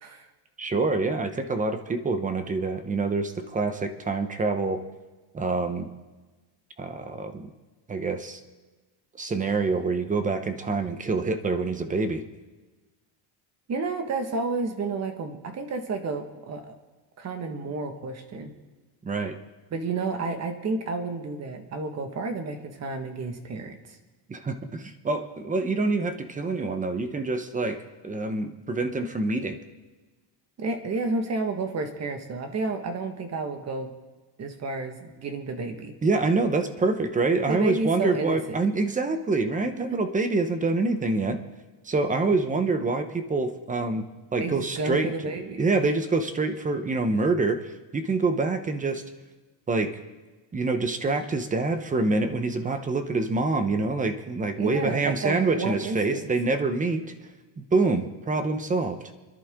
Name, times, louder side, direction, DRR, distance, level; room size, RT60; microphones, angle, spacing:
voice 1, 0.6-4.8 5.3-5.9 6.8-7.5 7.9-8.4 9.2-12.2 19.0-19.4 24.3-27.8 28.0-29.6 36.0-41.4 41.8-44.0 44.3-45.1 45.6-47.6 47.9-49.0 49.7-49.9 50.5-57.0 57.6-59.0, right 3 dB, 15° right, 8 dB, 0.9 m, -26 dB
voice 2, 13.7-16.8 17.2-18.5 19.7-24.0 30.6-33.9 34.4-35.9 37.4-38.6 39.8-40.0 44.4-45.9 54.6-56.3, right 3 dB, 35° right, 6 dB, 1.6 m, -31 dB
29.5 x 11.0 x 3.7 m, 1.3 s
cardioid pair, 170°, 47 cm